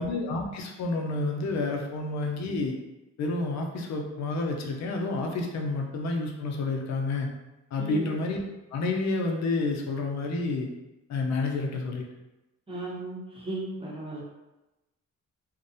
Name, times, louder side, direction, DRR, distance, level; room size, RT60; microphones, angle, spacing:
voice 1, 0.0-2.7 3.2-7.3 7.7-8.4 8.7-10.7 11.1-12.1, left 3 dB, 65° left, 1 dB, 0.5 m, -29 dB
voice 2, 7.8-8.1 12.7-14.2, right 1 dB, 20° right, -4 dB, 0.8 m, -36 dB
2.6 x 2.1 x 2.6 m, 1.0 s
cardioid pair, 90°, 30 cm